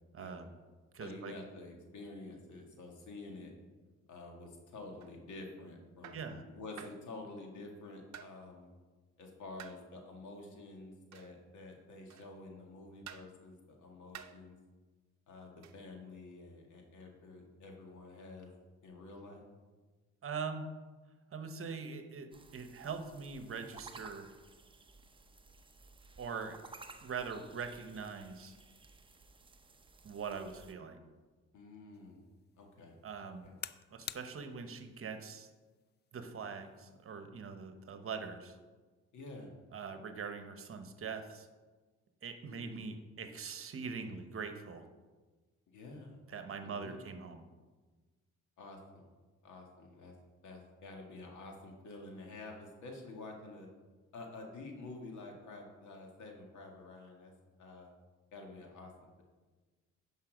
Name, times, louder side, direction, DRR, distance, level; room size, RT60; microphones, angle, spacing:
voice 1, 0.1-0.5 0.9-1.3 6.1-6.4 20.2-20.7 21.3-22.3 22.5-24.3 26.2-26.6 27.0-28.5 30.0-31.0 33.0-33.5 33.9-35.5 36.1-38.6 39.7-41.5 42.2-44.9 46.3-47.4, right 5 dB, 45° right, 7 dB, 1.1 m, -42 dB
voice 2, 1.0-3.5 4.1-8.7 9.2-14.6 15.3-18.5 18.8-19.4 31.5-32.2 32.6-33.0 33.2-33.5 39.1-39.5 42.4-42.8 45.7-47.0 48.6-49.0 49.4-50.1 50.4-53.7 54.1-57.3 57.6-57.9 58.3-58.9, left 2 dB, 75° left, 1 dB, 2.0 m, -49 dB
sound 1, 5.0-5.2 6.0-6.3 6.8-7.1 8.1-8.4 9.6-9.9 11.1-11.4 12.1-12.4 13.1-13.3 14.1-14.4 15.6-15.8, right 9 dB, 65° right, 0.7 m, -51 dB
sound 2, 22.3-30.7, right 3 dB, 15° right, 0.7 m, -56 dB
sound 3, 31.9-37.1, left 9 dB, 35° left, 0.4 m, -52 dB
10.5 x 5.7 x 5.1 m, 1.3 s
cardioid pair, 90°, 30 cm